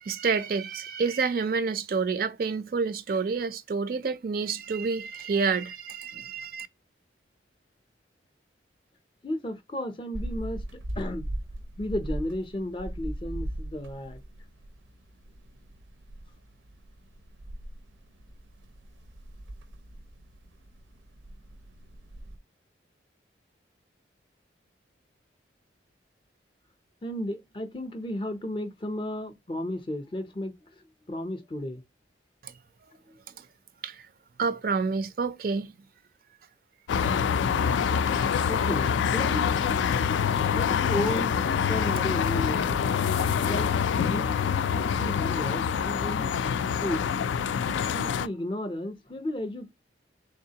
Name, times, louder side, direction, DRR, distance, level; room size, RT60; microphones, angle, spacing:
voice 1, 0.0-6.7 32.4-32.5 33.4-33.5 33.8-34.0 34.4-35.7 38.1-38.5, right 5 dB, 50° right, 0.4 m, -29 dB
voice 2, 9.2-11.2 11.8-14.2 27.0-30.6 31.1-31.8 38.4-39.9 40.5-41.4 41.7-42.8 43.5-43.7 44.1-46.3 46.8-47.1 47.7-49.7, left 1 dB, 25° left, 0.5 m, -34 dB
sound 1, 10.1-22.4, right 1 dB, 90° right, 0.6 m, -39 dB
sound 2, 36.9-48.3, left 7 dB, 80° left, 0.3 m, -26 dB
3.5 x 3.5 x 2.8 m
head